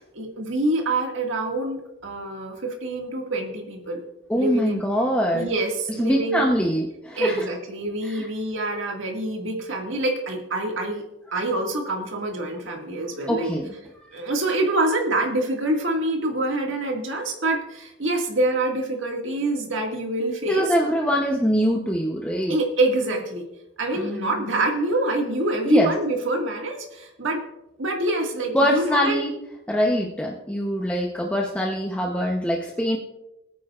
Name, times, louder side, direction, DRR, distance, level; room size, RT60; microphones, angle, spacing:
voice 1, 0.1-4.0 4.3-4.8 5.3-6.4 7.2-11.0 11.3-13.5 14.1-20.6 22.5-23.5 23.8-27.4 27.8-29.2, right 2 dB, 65° right, 1 dB, 1.9 m, -26 dB
voice 2, 4.3-5.5 6.0-7.5 8.0-8.3 13.3-13.7 14.0-14.1 20.5-22.6 23.9-24.5 25.6-25.9 28.5-29.3 29.7-33.0, equal, 5° left, -1 dB, 0.8 m, -23 dB
21.0 x 9.5 x 2.4 m, 0.90 s
head